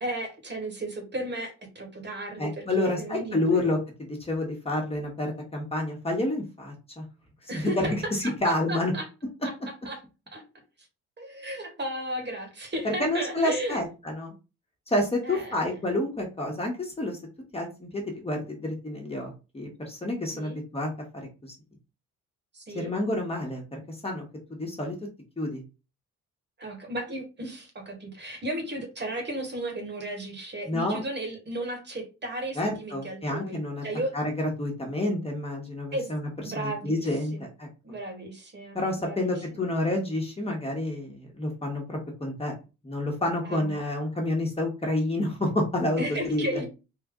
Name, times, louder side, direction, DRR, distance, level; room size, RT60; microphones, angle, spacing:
voice 1, 0.0-3.7 7.5-7.9 8.2-9.1 9.4-9.5 9.8-10.0 10.3-10.4 11.2-13.8 15.2-15.6 20.3-20.6 22.5-22.9 26.6-34.1 35.9-36.1 36.4-37.5 37.8-39.3 43.4-43.8 46.0-46.7, right 1 dB, 35° right, 3 dB, 1.5 m, -34 dB
voice 2, 2.4-3.8 4.2-7.0 7.5-8.9 12.8-14.3 14.9-17.2 17.5-20.9 21.4-21.5 22.7-24.2 24.5-24.9 25.4-25.6 30.7-31.0 32.5-33.8 34.1-36.3 36.5-37.7 38.7-42.5 42.8-46.6, left 1 dB, 20° left, 0 dB, 1.4 m, -29 dB
3.8 x 2.5 x 3.7 m, 0.30 s
cardioid pair, 90°, 30 cm